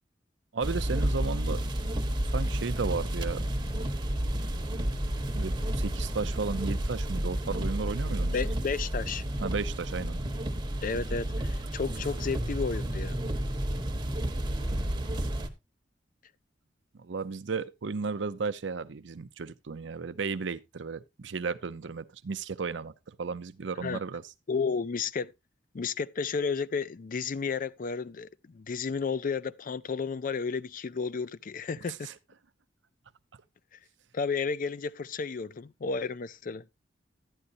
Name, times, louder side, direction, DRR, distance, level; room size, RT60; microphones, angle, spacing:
voice 1, 0.5-1.6 2.3-3.5 5.4-8.4 9.4-10.2 17.0-24.2 32.0-32.1, right 4 dB, 90° right, 0.6 m, -34 dB
sound 1, 0.6-15.5, right 1 dB, 25° right, 1.0 m, -31 dB
voice 2, 8.3-9.2 10.8-13.2 23.8-24.0 24.5-25.3 25.7-32.1 34.1-36.6, left 5 dB, 50° left, 0.4 m, -32 dB
11.5 x 9.8 x 2.6 m
head